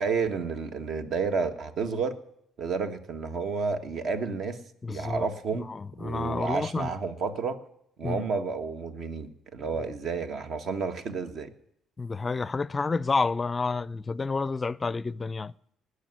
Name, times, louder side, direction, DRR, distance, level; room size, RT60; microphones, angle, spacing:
voice 1, 0.0-2.2 2.6-4.6 4.9-5.7 6.0-7.6 8.0-11.5, right 5 dB, 60° right, 1.7 m, -31 dB
voice 2, 4.8-6.9 8.0-8.3 12.0-15.5, left 4 dB, 25° left, 0.5 m, -30 dB
19.5 x 6.6 x 9.6 m
cardioid pair, 105°, 0 cm